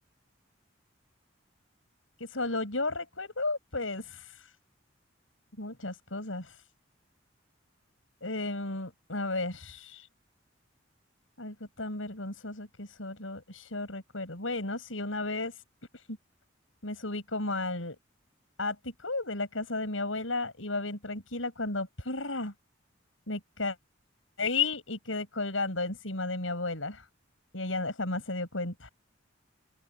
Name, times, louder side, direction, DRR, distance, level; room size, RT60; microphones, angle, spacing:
voice 1, 2.2-4.5 5.6-6.6 8.2-10.1 11.4-15.6 15.9-16.0 16.8-18.0 18.6-22.5 23.3-23.8 24.4-26.9 27.5-28.9, left 3 dB, 85° left, 7.4 m, -33 dB
open air
head